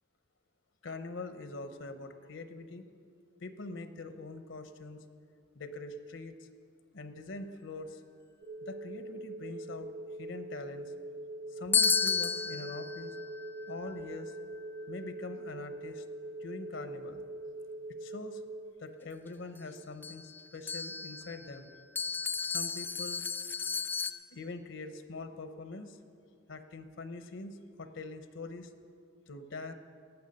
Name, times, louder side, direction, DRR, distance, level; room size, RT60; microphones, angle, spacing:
voice 1, 0.8-2.9 3.4-5.0 5.5-6.5 6.9-8.0 8.6-9.9 10.2-11.2 11.5-13.1 13.7-14.3 14.9-16.0 16.4-17.2 18.0-18.4 18.8-21.7 22.5-23.2 24.3-26.0 26.5-28.7 29.3-29.7, left 3 dB, 80° left, 9 dB, 0.8 m, -43 dB
sound 1, 8.4-18.7, right 1 dB, 40° right, 0.6 m, -43 dB
sound 2, 11.7-15.6 19.6-19.7 20.0-24.1, left 6 dB, 10° left, 0.3 m, -34 dB
17.5 x 9.1 x 5.3 m, 2.4 s
head